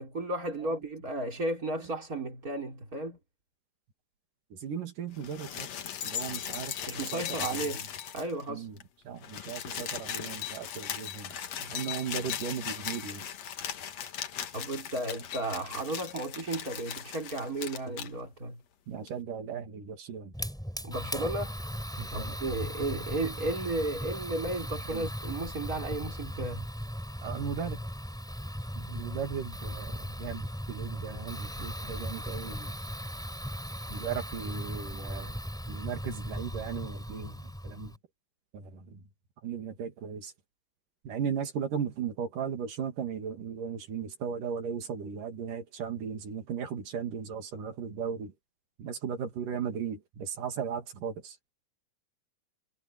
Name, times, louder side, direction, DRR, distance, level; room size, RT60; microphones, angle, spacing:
voice 1, 0.0-3.2 6.9-7.8 8.1-8.7 14.5-18.6 20.8-21.5 22.1-26.7, right 2 dB, 25° right, 5.2 m, -34 dB
voice 2, 4.5-5.7 6.0-7.7 8.5-8.8 9.1-13.2 18.9-20.3 22.0-22.4 24.9-25.1 27.2-27.8 28.8-32.7 33.9-35.3 35.7-38.0 38.5-39.0 39.4-40.3 41.0-48.3 48.8-51.4, right 7 dB, 80° right, 3.9 m, -37 dB
sound 1, 5.2-8.5 8.8-8.9 9.1-18.1 19.1-19.2, left 9 dB, 60° left, 2.5 m, -38 dB
Fire, 20.3-38.0, equal, ahead, 3.9 m, -38 dB
omnidirectional pair, 3.7 m